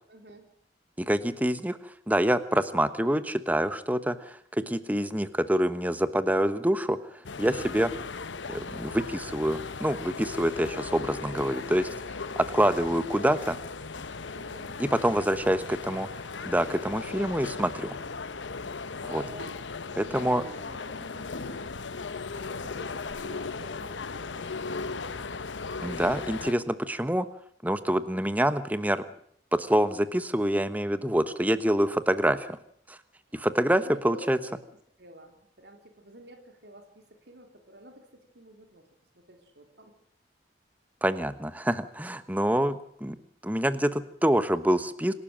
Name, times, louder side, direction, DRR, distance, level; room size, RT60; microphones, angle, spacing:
voice 1, 0.1-0.5 11.9-12.0 14.3-14.8 15.1-15.7 18.8-19.6 20.0-21.7 22.3-25.2 33.3-34.6 35.0-38.9 39.1-39.9, right 1 dB, 65° right, 5 dB, 3.6 m, -49 dB
voice 2, 1.0-7.0 7.4-7.9 8.5-11.9 12.5-13.6 14.8-15.6 15.9-16.1 16.4-17.9 19.0-19.2 20.0-20.4 25.8-27.3 27.6-29.0 29.5-32.6 32.9-33.0 33.3-34.4 41.0-43.2 43.4-45.1, right 1 dB, 10° right, 12 dB, 1.1 m, -26 dB
sound 1, 7.2-26.5, left 4 dB, 85° left, 1.0 m, -37 dB
27.0 x 12.5 x 7.6 m, 0.66 s
head